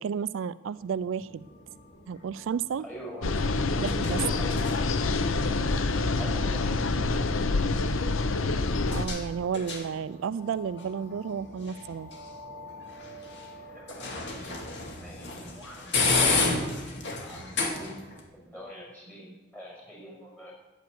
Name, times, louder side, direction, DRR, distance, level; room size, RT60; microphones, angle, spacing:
voice 1, 0.0-1.5 2.1-2.8 3.8-4.2 8.9-12.1, right 7 dB, 80° right, 17 dB, 0.3 m, -32 dB
sound 1, 0.8-18.2, left 3 dB, 60° left, 2.2 m, -34 dB
voice 2, 2.8-3.4 3.7-3.8 4.1-5.7 6.2-7.7 13.5-18.0 18.5-20.5, equal, 5° left, -2 dB, 5.4 m, -45 dB
sound 2, 3.2-9.1, left 3 dB, 90° left, 0.8 m, -26 dB
9.3 x 9.2 x 8.0 m, 1.2 s
head